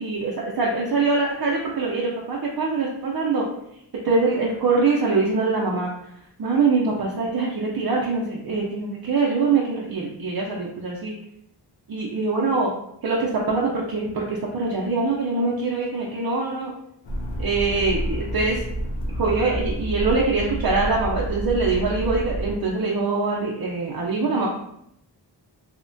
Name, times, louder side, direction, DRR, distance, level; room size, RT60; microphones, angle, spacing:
voice 1, 0.0-3.5 4.0-5.9 6.4-11.1 11.9-12.7 13.0-16.7 17.4-18.6 19.2-24.5, right 3 dB, 60° right, -3 dB, 0.5 m, -23 dB
sound 1, 17.0-22.5, right 1 dB, 85° left, 0.5 m, -29 dB
2.8 x 2.1 x 2.6 m, 0.77 s
wide cardioid pair, 45°, 43 cm